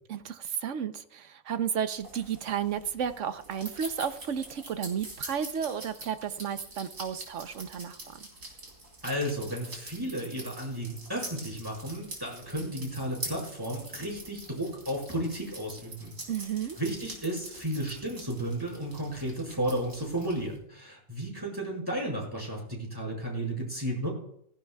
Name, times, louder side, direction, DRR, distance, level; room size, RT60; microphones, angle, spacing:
voice 1, 0.1-8.3 16.3-16.8, right 8 dB, 65° right, 10 dB, 1.1 m, -33 dB
sound 1, 2.0-20.6, right 2 dB, 80° right, 4.1 m, -45 dB
voice 2, 9.0-16.1 16.8-24.1, right 1 dB, 15° right, -2 dB, 5.0 m, -33 dB
16.5 x 15.5 x 2.3 m, 0.70 s
omnidirectional pair, 1.4 m